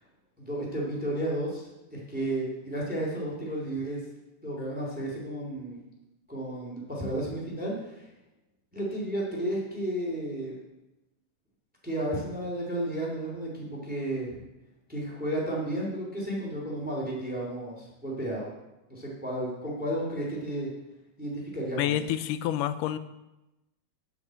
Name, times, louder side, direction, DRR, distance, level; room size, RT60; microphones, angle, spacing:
voice 1, 0.4-4.0 4.4-5.8 6.3-8.1 8.7-10.5 11.8-14.4 14.9-18.5 18.9-20.7 21.2-21.9, right 1 dB, 5° right, -3 dB, 2.4 m, -32 dB
voice 2, 21.8-23.0, left 11 dB, 90° left, 13 dB, 2.2 m, -28 dB
10.5 x 6.5 x 7.7 m, 0.97 s
omnidirectional pair, 3.6 m